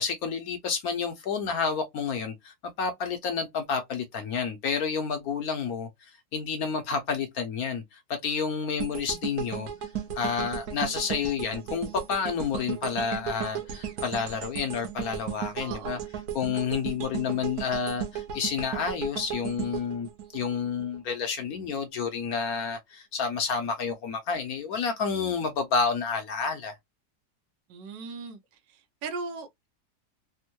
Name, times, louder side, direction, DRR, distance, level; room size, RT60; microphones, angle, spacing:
voice 1, 0.0-9.7 10.1-16.0 16.3-26.8, left 6 dB, 70° left, 0.9 m, -30 dB
sound 1, 8.8-21.0 21.4-21.6, right 9 dB, 65° right, 1.1 m, -36 dB
voice 2, 15.6-16.1 27.7-28.4 28.7-29.7, right 4 dB, 85° right, 1.3 m, -38 dB
3.5 x 2.1 x 2.8 m
omnidirectional pair, 1.9 m